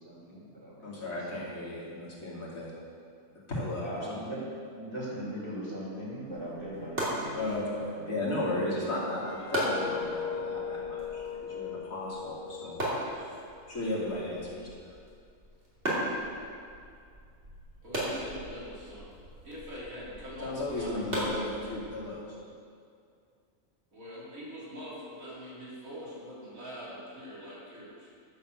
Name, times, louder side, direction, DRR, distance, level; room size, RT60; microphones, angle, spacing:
voice 1, 0.0-1.3 3.8-4.4 4.7-8.4, right 1 dB, 20° right, -7 dB, 3.3 m, -40 dB
voice 2, 0.8-2.7 3.5-4.0 7.3-12.8 13.1-13.4 13.7-14.7 20.4-22.3, left 2 dB, 90° left, -6 dB, 3.2 m, -35 dB
sound 1, 6.3-22.1, right 1 dB, 60° right, 3.1 m, -38 dB
sound 2, 8.7-13.8 14.1-14.4, left 6 dB, 55° left, 0.5 m, -39 dB
voice 3, 17.8-19.1 19.4-21.0 23.9-28.1, equal, 85° right, -7 dB, 3.5 m, -44 dB
11.0 x 7.1 x 6.9 m, 2.3 s
omnidirectional pair, 1.4 m